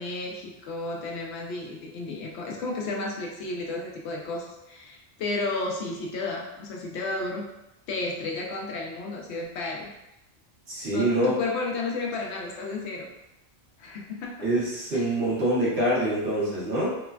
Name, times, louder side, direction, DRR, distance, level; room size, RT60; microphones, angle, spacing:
voice 1, 0.0-7.5 7.9-9.9 10.9-13.1 13.8-14.5 14.9-15.1, left 3 dB, 80° left, -1 dB, 0.9 m, -32 dB
voice 2, 10.7-11.4 14.4-17.0, right 1 dB, 70° right, -7 dB, 1.2 m, -25 dB
3.1 x 2.2 x 2.2 m, 0.92 s
omnidirectional pair, 1.1 m